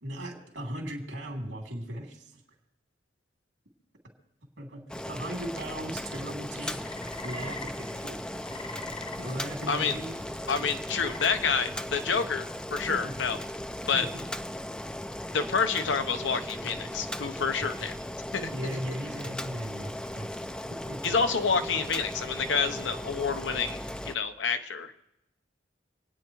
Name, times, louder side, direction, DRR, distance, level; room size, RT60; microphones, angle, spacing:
voice 1, 0.0-2.4 4.6-8.2 9.2-10.2 12.9-13.1 13.9-14.2 17.6-17.7 18.5-21.1, right 1 dB, 80° right, 1 dB, 2.8 m, -38 dB
Boiling, 4.9-24.1, left 1 dB, 5° left, 0.4 m, -37 dB
sound 1, 6.6-11.7, left 3 dB, 30° left, 0.9 m, -45 dB
voice 2, 10.5-13.4 13.9-14.1 15.3-18.0 18.3-18.5 21.0-24.9, left 5 dB, 80° left, 8 dB, 0.9 m, -28 dB
27.0 x 9.3 x 3.1 m, 0.85 s
head